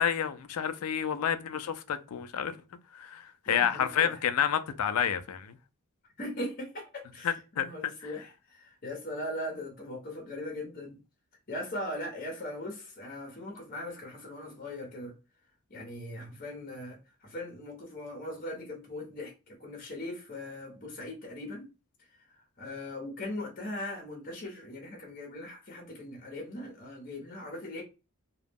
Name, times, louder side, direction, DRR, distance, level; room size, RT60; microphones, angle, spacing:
voice 1, 0.0-2.6 2.9-5.6 7.2-8.1, left 8 dB, 80° left, 0.4 m, -30 dB
voice 2, 3.5-4.2 6.2-11.0 11.5-15.1 15.7-21.7 22.6-27.8, left 1 dB, 40° left, 0.7 m, -39 dB
2.3 x 2.0 x 3.3 m
head